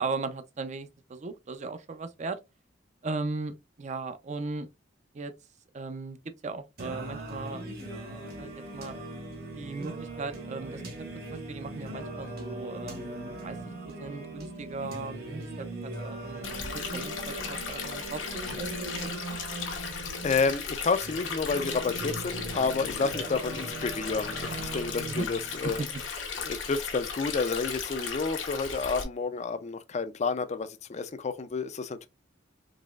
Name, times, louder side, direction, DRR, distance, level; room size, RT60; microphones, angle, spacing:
voice 1, 0.0-2.4 3.0-4.7 5.1-5.3 5.7-6.2 6.4-7.7 8.4-8.9 9.5-10.8 11.3-13.6 14.0-16.6 16.9-19.4 25.1-25.3 25.6-25.9, right 3 dB, 40° right, 0.5 m, -37 dB
Singing, 6.8-25.8, right 2 dB, 55° right, 1.4 m, -40 dB
Stream, 16.4-29.0, left 5 dB, 85° left, 1.1 m, -36 dB
voice 2, 19.7-25.8 26.4-32.1, left 4 dB, 35° left, 0.4 m, -30 dB
4.0 x 3.0 x 2.3 m
head